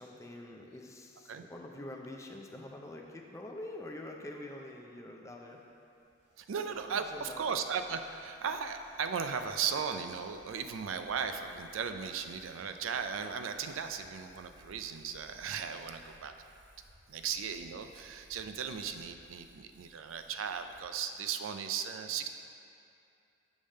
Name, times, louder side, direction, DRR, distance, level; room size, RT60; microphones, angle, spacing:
voice 1, 0.0-5.6 6.5-7.6, left 1 dB, 15° left, 1 dB, 0.5 m, -46 dB
Rhythmical Interference, 5.5-20.8, equal, 60° right, 1.6 m, -63 dB
voice 2, 6.4-16.3 17.1-22.3, right 6 dB, 90° right, 7 dB, 0.4 m, -36 dB
7.2 x 3.4 x 6.4 m, 2.6 s
head